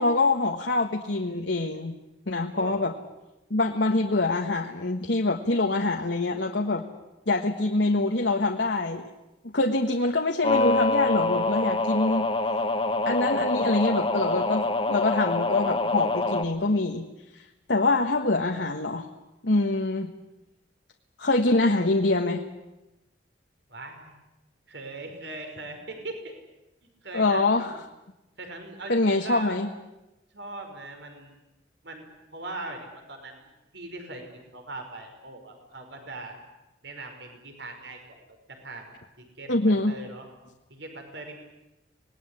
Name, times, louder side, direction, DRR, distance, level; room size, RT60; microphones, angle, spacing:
voice 1, 0.0-2.0 2.3-2.9 3.5-6.8 7.3-9.0 9.5-12.3 13.0-14.6 14.9-17.1 17.7-19.1 19.4-20.1 21.2-22.4 27.1-27.7 28.9-29.7 39.5-39.9, left 2 dB, 70° left, 4 dB, 1.5 m, -24 dB
sound 1, 10.4-16.4, left 2 dB, 25° left, 1.6 m, -25 dB
voice 2, 23.7-24.2 24.7-26.3 26.8-27.8 28.4-29.6 30.3-31.3 31.8-32.1 32.3-34.2 34.5-36.3 36.8-38.2 38.5-38.8 39.2-40.3 40.7-41.4, right 2 dB, 70° right, 4 dB, 5.4 m, -40 dB
26.5 x 20.0 x 9.9 m, 0.99 s
head